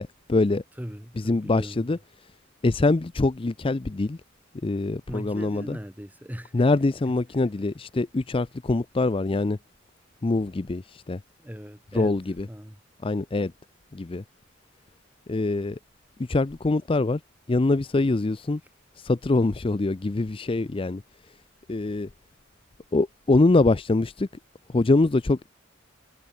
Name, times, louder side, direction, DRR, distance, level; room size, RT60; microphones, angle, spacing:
voice 1, 0.0-0.6 1.3-2.0 2.6-4.2 4.6-5.8 6.5-9.6 10.2-11.2 12.0-12.2 13.0-13.5 13.9-14.2 15.3-15.8 16.3-17.2 17.5-18.6 19.0-21.0 21.7-22.1 22.9-24.3 24.7-25.5, left 2 dB, 25° left, 0.5 m, -24 dB
voice 2, 0.8-2.0 5.1-6.7 7.1-7.2 11.4-12.2 12.5-12.8, equal, 10° right, 2.4 m, -38 dB
head